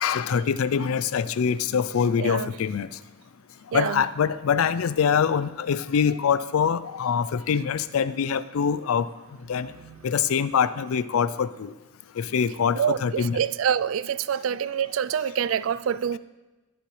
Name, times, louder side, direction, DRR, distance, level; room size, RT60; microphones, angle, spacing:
voice 1, 0.0-2.9 3.7-9.1 9.5-9.7 10.0-11.7 12.2-13.4, left 7 dB, 90° left, 0.4 m, -24 dB
voice 2, 2.2-2.5 3.7-4.0 9.8-10.0 12.7-16.2, right 8 dB, 70° right, 0.3 m, -26 dB
18.5 x 6.8 x 3.2 m
head